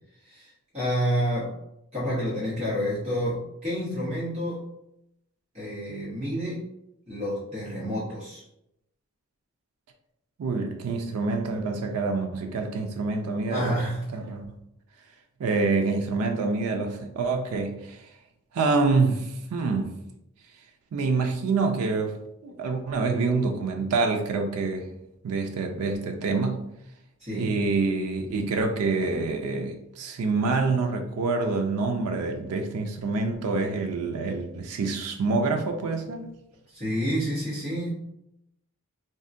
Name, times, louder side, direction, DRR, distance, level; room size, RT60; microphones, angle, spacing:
voice 1, 0.2-1.6 1.9-4.6 5.5-6.6 7.1-8.4 13.5-14.0 27.2-27.5 36.7-37.9, equal, 30° right, 1.0 m, -29 dB
voice 2, 10.4-13.8 14.1-14.4 15.4-18.0 18.5-19.9 20.9-22.2 22.4-24.9 25.2-26.6 27.3-36.3, right 3 dB, 85° right, 0.4 m, -26 dB
3.7 x 2.1 x 2.5 m
head